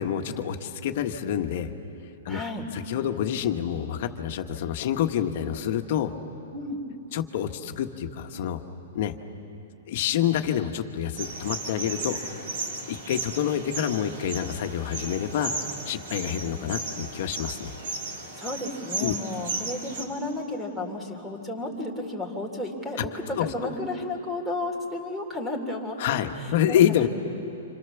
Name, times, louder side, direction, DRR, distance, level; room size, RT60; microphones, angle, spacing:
voice 1, 0.0-1.7 2.2-2.4 2.7-6.1 7.1-8.6 8.9-9.1 9.9-12.2 12.9-15.5 15.8-17.7 19.0-19.1 23.4-23.5 26.0-27.1, left 10 dB, 55° left, 6 dB, 1.5 m, -27 dB
voice 2, 2.3-2.7 6.5-6.8 18.4-26.8, left 2 dB, 5° right, 2 dB, 3.5 m, -33 dB
sound 1, 11.2-20.0, right 3 dB, 65° right, 4.5 m, -35 dB
28.5 x 27.0 x 7.1 m, 2.9 s
hypercardioid pair, 145°, 0 cm